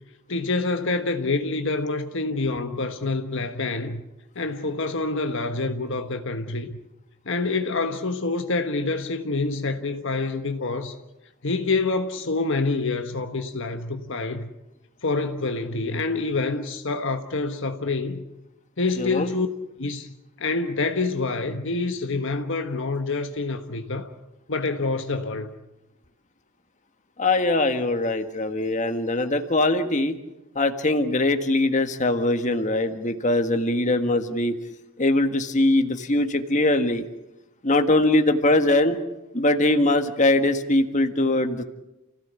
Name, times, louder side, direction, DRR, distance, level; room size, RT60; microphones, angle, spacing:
voice 1, 0.3-4.0 4.3-6.8 7.2-11.0 11.4-14.5 15.0-18.2 18.8-19.5 19.8-20.1 20.4-24.1 24.5-25.5, left 3 dB, 55° left, 1.3 m, -27 dB
voice 2, 19.0-19.3 27.2-30.2 30.5-34.6 35.0-37.0 37.6-39.0 39.3-41.6, left 2 dB, 35° left, 1.6 m, -22 dB
30.0 x 16.5 x 8.3 m
head